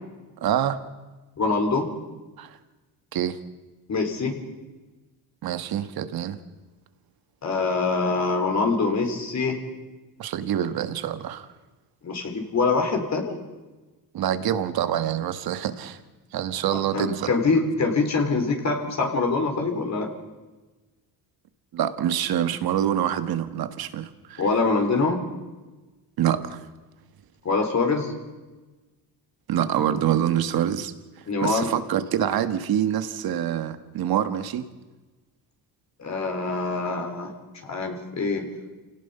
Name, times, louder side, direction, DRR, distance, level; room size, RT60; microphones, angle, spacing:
voice 1, 0.4-0.8 2.4-2.6 3.1-3.4 5.4-6.4 10.2-11.5 14.1-16.0 16.3-17.3 21.7-24.4 26.2-26.6 29.5-30.9 31.4-34.7, right 10 dB, 65° right, 10 dB, 1.6 m, -26 dB
voice 2, 1.4-1.9 3.9-4.4 7.4-9.6 12.0-13.4 16.9-20.1 24.4-25.2 27.4-28.1 31.3-31.7 36.0-37.3 37.6-38.5, left 3 dB, 45° left, 3 dB, 4.0 m, -24 dB
27.5 x 17.5 x 5.6 m, 1.2 s
cardioid pair, 95°, 39 cm